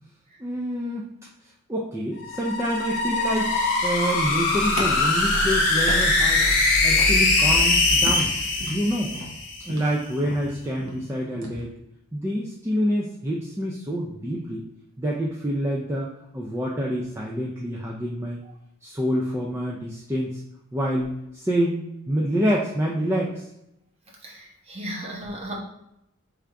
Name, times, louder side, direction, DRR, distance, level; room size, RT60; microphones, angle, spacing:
voice 1, 0.4-1.1 1.7-3.5 3.8-6.4 6.8-8.3 8.7-9.1 9.6-11.7 12.1-14.6 15.0-16.1 16.3-18.4 18.8-20.4 20.7-23.4, equal, 10° right, -3 dB, 0.3 m, -27 dB
sound 1, 2.2-9.7, left 2 dB, 55° left, 0.9 m, -22 dB
sound 2, 4.8-6.6 6.9-7.2 7.5-7.7 8.0-11.6, right 1 dB, 70° right, 0.9 m, -36 dB
voice 2, 24.2-25.5, right 1 dB, 30° right, -2 dB, 0.8 m, -35 dB
3.4 x 2.5 x 4.5 m, 0.82 s
head